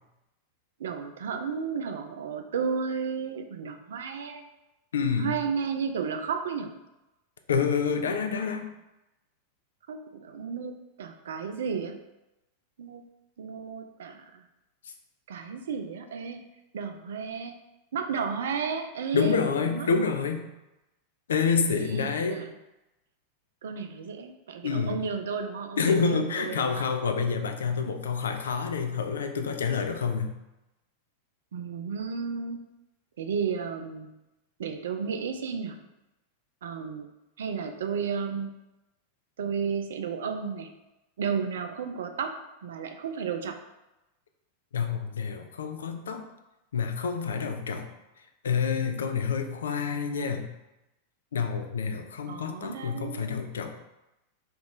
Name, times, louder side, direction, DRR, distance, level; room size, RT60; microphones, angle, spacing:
voice 1, 0.8-4.4 5.2-6.7 9.9-12.0 12.8-13.0 13.4-14.4 15.3-16.4 16.7-17.6 17.9-19.9 21.7-22.5 23.6-26.9 31.5-32.6 33.2-34.1 34.6-35.8 36.6-37.1 37.4-38.5 39.4-40.7 41.2-42.4 42.6-43.6 52.3-53.3, right 6 dB, 60° right, 6 dB, 0.3 m, -33 dB
voice 2, 4.9-5.3 7.5-8.7 19.1-20.5 21.3-22.4 24.6-25.0 25.8-30.3 44.7-46.2 46.7-47.9 48.4-50.4 51.3-53.7, left 5 dB, 65° left, 6 dB, 0.3 m, -28 dB
2.9 x 2.4 x 3.6 m, 0.96 s
figure-of-eight pair, 90°, 0 cm